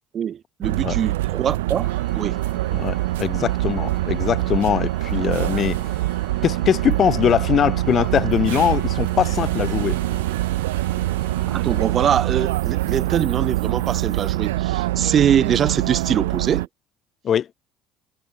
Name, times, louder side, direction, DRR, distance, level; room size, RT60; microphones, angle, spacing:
voice 1, 0.1-2.4 11.5-16.7, right 8 dB, 45° right, 0.9 m, -23 dB
sound 1, 0.6-16.7, right 17 dB, 75° right, 0.3 m, -24 dB
Organ, 1.7-12.5, left 5 dB, 30° left, 5.0 m, -44 dB
voice 2, 2.7-5.8 6.4-10.0 17.2-17.5, left 9 dB, 45° left, 1.3 m, -21 dB
hypercardioid pair, 60°, 0 cm